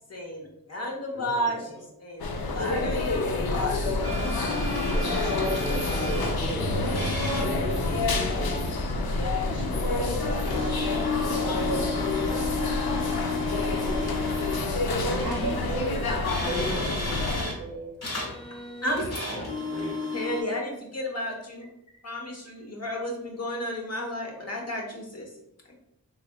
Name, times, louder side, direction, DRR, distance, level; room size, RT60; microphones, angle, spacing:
voice 1, 0.1-3.2 3.5-4.2 9.0-9.6 18.8-19.1 20.1-21.7 22.0-25.3 25.7-25.8, left 1 dB, 45° left, 0 dB, 0.9 m, -32 dB
voice 2, 1.1-1.9 4.9-8.7 9.4-12.2 13.4-14.5 19.3-20.2, equal, 15° left, -3 dB, 0.6 m, -38 dB
sound 1, 2.2-17.4, left 2 dB, 90° left, 0.5 m, -28 dB
sound 2, 4.0-6.4 6.8-7.5 10.4-14.7 15.2-17.6 18.0-20.4, left 2 dB, 60° left, 1.4 m, -33 dB
voice 3, 14.9-18.0, right 2 dB, 60° right, 0 dB, 0.5 m, -35 dB
3.5 x 3.3 x 2.2 m, 0.83 s
wide cardioid pair, 65°, 36 cm